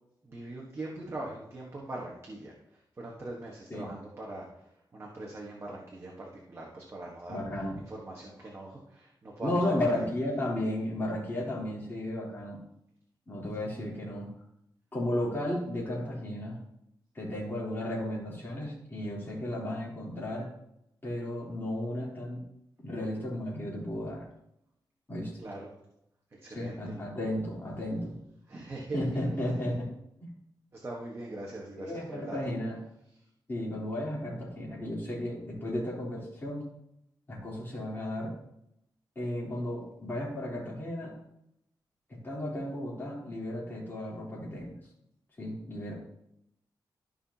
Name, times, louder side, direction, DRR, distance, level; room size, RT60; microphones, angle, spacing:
voice 1, 0.2-7.4 7.8-10.1 25.4-25.7 26.3-26.9 28.5-29.2 30.7-32.4 33.1-33.2, right 2 dB, 30° right, -2 dB, 1.3 m, -42 dB
voice 2, 7.3-7.8 9.4-12.6 13.3-14.3 14.9-16.6 17.1-20.5 21.0-22.4 22.8-24.2 25.1-25.3 26.5-28.2 28.9-29.9 30.2-30.3 31.8-32.8 33.5-36.7 37.3-38.3 39.1-41.1 42.2-44.7 45.4-45.9, left 1 dB, 25° left, -6 dB, 3.3 m, -34 dB
13.5 x 5.7 x 2.9 m, 0.80 s
wide cardioid pair, 155°, 8 cm